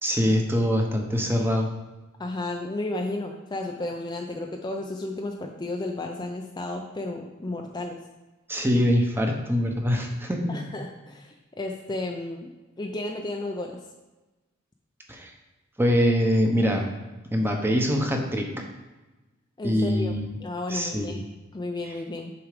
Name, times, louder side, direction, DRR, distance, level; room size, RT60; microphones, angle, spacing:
voice 1, 0.0-1.7 8.5-10.7 15.1-15.3 15.8-16.8 17.3-18.5 19.6-20.2 20.7-21.2, equal, 10° right, 2 dB, 0.8 m, -23 dB
voice 2, 2.2-8.0 10.5-12.5 12.8-13.8 19.6-20.1 20.4-22.3, left 2 dB, 20° left, 2 dB, 0.4 m, -33 dB
6.9 x 4.8 x 5.0 m, 1.1 s
head